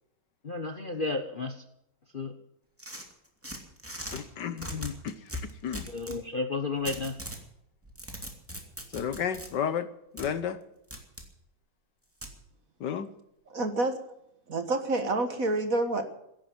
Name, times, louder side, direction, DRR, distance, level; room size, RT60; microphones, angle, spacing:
voice 1, 0.4-1.5 2.1-2.3 5.9-7.2, left 3 dB, 35° left, 6 dB, 1.0 m, -32 dB
sound 1, 2.8-4.2 4.6-6.2 6.9-7.4 7.8-9.5 10.2-10.3 10.9-11.3 12.2-12.4, equal, 5° right, 2.5 m, -39 dB
voice 2, 4.1-5.1 5.6-5.9 8.9-9.9 10.1-10.6 12.8-13.1, left 8 dB, 65° left, 12 dB, 1.5 m, -32 dB
voice 3, 13.5-14.0 14.5-16.0, right 2 dB, 45° right, 8 dB, 1.8 m, -28 dB
16.5 x 10.5 x 7.8 m, 0.79 s
omnidirectional pair, 2.2 m